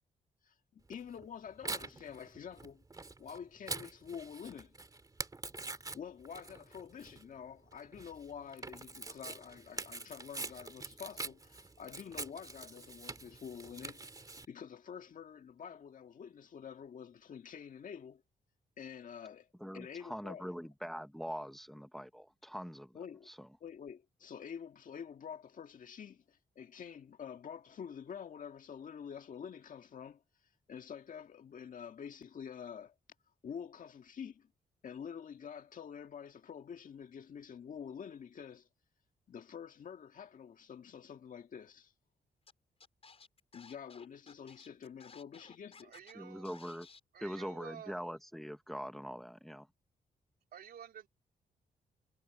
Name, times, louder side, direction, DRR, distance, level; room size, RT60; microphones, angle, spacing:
voice 1, 0.4-2.8 3.2-4.7 5.9-18.2 18.8-19.5 19.7-20.4 22.9-23.3 23.6-30.2 30.7-32.9 33.4-34.5 34.8-38.7 39.3-41.9 43.5-45.9, left 7 dB, 60° left, 1.9 m, -48 dB
Tearing, 0.9-14.4, right 3 dB, 25° right, 2.6 m, -45 dB
voice 2, 19.6-23.0 23.3-23.5 46.1-46.9 47.2-49.7, equal, ahead, 1.2 m, -43 dB
Scratching (performance technique), 42.5-42.6 42.8-46.1 46.4-47.0, left 5 dB, 40° left, 5.6 m, -57 dB
voice 3, 45.8-46.5 47.1-48.1 50.5-51.1, right 9 dB, 80° right, 3.5 m, -51 dB
cardioid pair, 115°, 16 cm